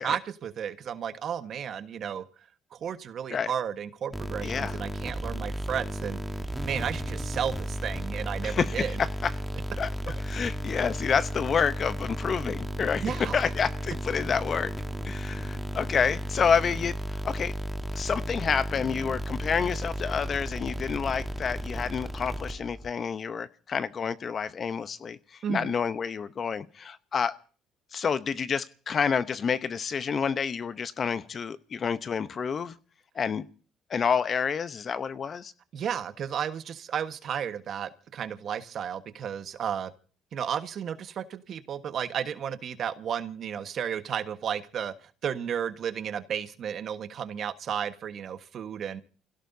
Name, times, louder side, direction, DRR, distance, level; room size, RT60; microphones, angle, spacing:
voice 1, 0.0-2.2 2.7-6.2 6.6-9.0 13.0-13.4 25.4-25.7 35.7-39.9 40.3-44.9 45.2-49.0, right 8 dB, 55° right, 1.3 m, -33 dB
sound 1, 4.1-22.9, equal, 5° right, 1.4 m, -34 dB
voice 2, 4.4-4.8 8.4-9.3 9.8-14.7 15.1-17.5 17.9-25.2 25.5-27.4 27.9-32.7 33.2-33.5 33.9-35.5, left 6 dB, 40° left, 0.8 m, -29 dB
28.5 x 16.5 x 2.7 m
cardioid pair, 90°, 0 cm